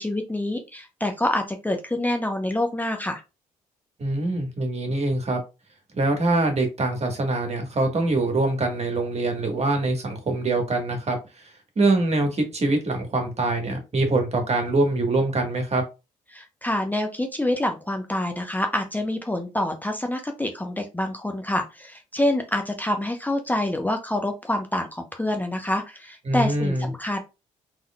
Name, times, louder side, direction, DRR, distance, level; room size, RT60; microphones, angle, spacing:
voice 1, 0.0-3.2 16.3-27.2, left 1 dB, 10° left, 0.7 m, -26 dB
voice 2, 4.0-5.4 5.9-11.2 11.8-15.8 26.3-26.9, right 2 dB, 40° right, 1.3 m, -24 dB
3.5 x 3.2 x 2.2 m
hypercardioid pair, 50°, 17 cm